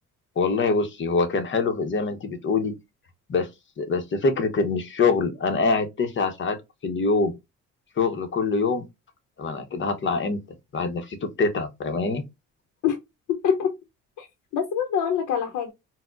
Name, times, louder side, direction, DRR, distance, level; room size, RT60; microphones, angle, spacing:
voice 1, 0.4-2.7 3.3-3.5 3.8-6.6 6.8-7.3 8.0-8.8 9.4-10.4 10.7-12.2, left 4 dB, 40° left, 0.8 m, -24 dB
voice 2, 13.3-13.7 14.2-14.3 14.5-15.7, left 8 dB, 80° left, 0.7 m, -24 dB
4.2 x 2.1 x 2.4 m
cardioid pair, 90°, 30 cm